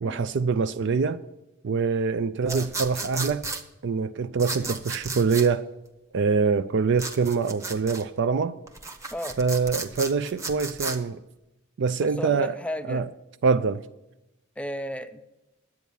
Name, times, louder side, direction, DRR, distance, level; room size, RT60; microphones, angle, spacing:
voice 1, 0.0-1.2 1.6-3.4 3.8-5.7 6.1-8.5 9.4-11.2 11.8-12.5 12.9-13.0 13.4-13.8, right 5 dB, 55° right, 0.4 m, -24 dB
sound 1, 2.5-3.6 4.4-5.5 7.0-8.0 8.7-11.0, right 3 dB, 15° right, 0.9 m, -34 dB
voice 2, 12.0-13.1 14.6-15.2, left 1 dB, 5° left, 0.6 m, -34 dB
11.0 x 8.3 x 7.0 m
head